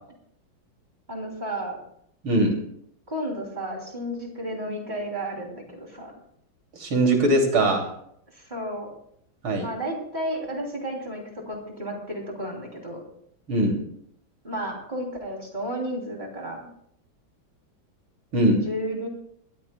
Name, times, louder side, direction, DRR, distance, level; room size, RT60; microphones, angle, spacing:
voice 1, 1.1-1.8 3.1-6.1 8.3-8.9 9.6-13.0 14.4-16.6 18.6-19.1, right 1 dB, 20° right, -1 dB, 3.1 m, -32 dB
voice 2, 6.8-7.9 9.4-9.7 13.5-13.8 18.3-18.6, right 1 dB, 85° right, 1 dB, 3.5 m, -21 dB
22.0 x 14.0 x 2.3 m, 0.70 s
omnidirectional pair, 2.2 m